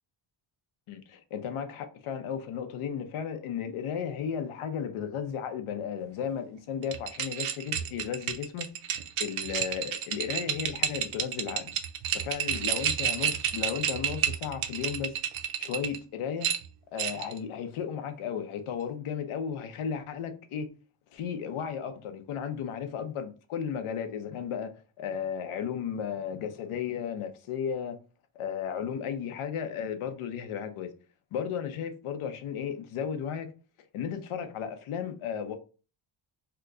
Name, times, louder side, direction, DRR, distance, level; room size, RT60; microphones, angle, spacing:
voice 1, 0.9-8.7 9.2-11.7 12.1-15.2 15.6-16.5 16.9-20.7 21.1-24.7 25.0-28.0 28.3-30.9 31.3-33.5 33.9-35.6, left 7 dB, 80° left, 0.7 m, -34 dB
sound 1, 6.8-16.0 16.4-17.4, right 9 dB, 70° right, 0.6 m, -31 dB
2.9 x 2.3 x 3.6 m
wide cardioid pair, 150°, 49 cm